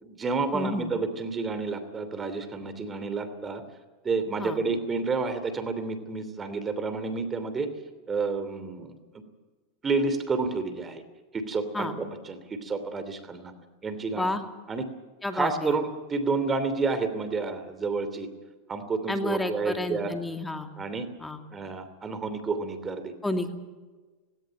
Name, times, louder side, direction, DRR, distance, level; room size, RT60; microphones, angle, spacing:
voice 1, 0.0-3.6 4.0-7.7 8.1-8.9 9.8-11.0 11.3-13.5 13.8-14.3 14.7-14.9 15.3-18.3 18.7-20.1 20.8-21.1 21.5-23.1, right 4 dB, 20° right, 11 dB, 2.9 m, -30 dB
voice 2, 0.5-0.9 4.4-4.6 11.7-11.9 14.2-14.4 15.2-15.7 19.1-20.7 21.2-21.4 23.2-23.5, left 1 dB, 10° left, 6 dB, 2.4 m, -30 dB
18.0 x 18.0 x 8.9 m, 1.3 s
hypercardioid pair, 110°, 0 cm